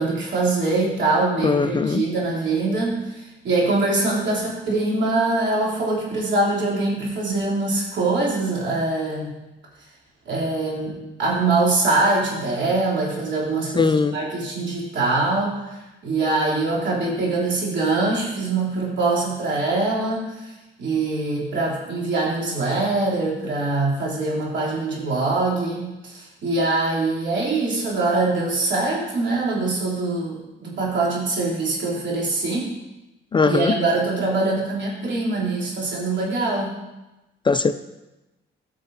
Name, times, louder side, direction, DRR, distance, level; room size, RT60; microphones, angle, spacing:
voice 1, 0.0-9.3 10.2-20.5 20.8-32.7 33.4-36.7, right 3 dB, 65° right, -5 dB, 3.2 m, -23 dB
voice 2, 1.4-2.0 13.8-14.1 33.3-33.8 37.5-37.7, left 4 dB, 25° left, 11 dB, 0.3 m, -19 dB
14.0 x 6.5 x 2.7 m, 1.0 s
cardioid pair, 90°, 20 cm